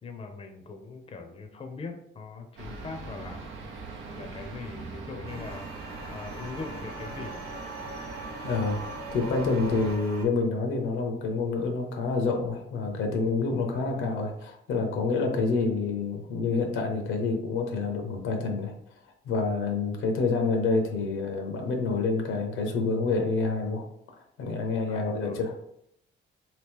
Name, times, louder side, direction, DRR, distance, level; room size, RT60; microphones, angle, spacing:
voice 1, 0.0-3.5 4.2-5.7 6.1-7.6 13.9-14.2 24.9-25.4, left 4 dB, 30° left, 5 dB, 0.5 m, -41 dB
sound 1, 2.6-10.0, right 2 dB, 85° right, 0.7 m, -41 dB
sound 2, 5.2-10.2, right 3 dB, 50° right, 0.8 m, -41 dB
voice 2, 8.4-8.8 9.1-18.7 19.2-23.9 24.4-25.5, left 3 dB, 85° left, 3 dB, 0.7 m, -27 dB
2.9 x 2.7 x 3.5 m, 0.75 s
cardioid pair, 90°, 20 cm